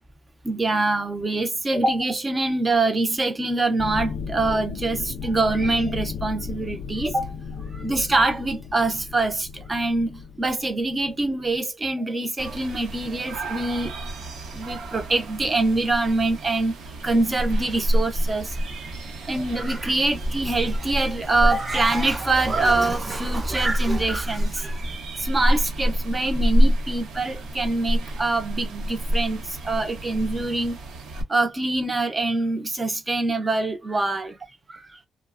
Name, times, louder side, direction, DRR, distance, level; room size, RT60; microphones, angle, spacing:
voice 1, 0.4-13.9 14.5-18.6 19.2-24.8 25.2-30.8 31.3-34.4 34.7-35.0, right 2 dB, 20° right, 0.4 m, -24 dB
sound 1, 3.8-11.6, left 5 dB, 50° left, 0.4 m, -35 dB
sound 2, 12.4-31.2, equal, 85° right, 0.7 m, -27 dB
3.1 x 2.0 x 2.3 m
wide cardioid pair, 175°, 0 cm